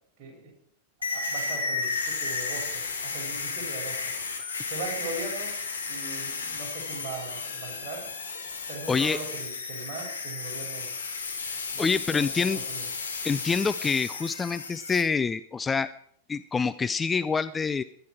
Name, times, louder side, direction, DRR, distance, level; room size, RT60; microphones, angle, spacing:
voice 1, 0.2-0.5 1.1-4.1 4.7-5.6 5.9-8.1 8.7-10.9 11.7-12.9, right 4 dB, 40° right, -1 dB, 6.9 m, -40 dB
sound 1, 1.0-15.0, left 4 dB, 75° left, 2.4 m, -33 dB
voice 2, 8.9-9.2 11.8-12.6 13.2-15.9 16.3-17.8, left 5 dB, 15° left, 12 dB, 0.5 m, -26 dB
18.0 x 11.5 x 4.7 m, 0.63 s
figure-of-eight pair, 90°, 0 cm